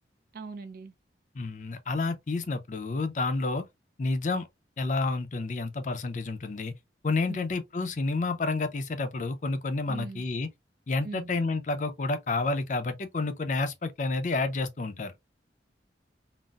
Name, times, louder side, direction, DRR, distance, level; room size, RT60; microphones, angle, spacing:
voice 1, 0.3-0.9 7.3-7.5 9.9-10.2 11.0-11.3, right 4 dB, 50° right, 0.4 m, -40 dB
voice 2, 1.3-3.7 4.0-4.5 4.8-6.7 7.0-10.5 10.9-15.1, left 3 dB, 45° left, 0.5 m, -30 dB
3.9 x 2.0 x 2.3 m
head